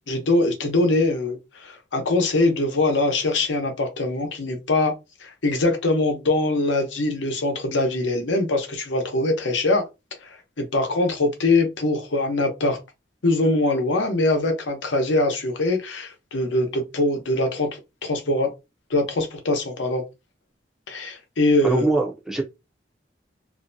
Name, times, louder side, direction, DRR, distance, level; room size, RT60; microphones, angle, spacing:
voice 1, 0.1-9.9 10.2-12.8 13.2-17.7 18.0-18.5 18.9-20.0 20.9-21.8, left 2 dB, 85° left, 0.7 m, -23 dB
voice 2, 21.6-22.4, right 3 dB, 5° right, 0.4 m, -22 dB
2.5 x 2.1 x 2.6 m
head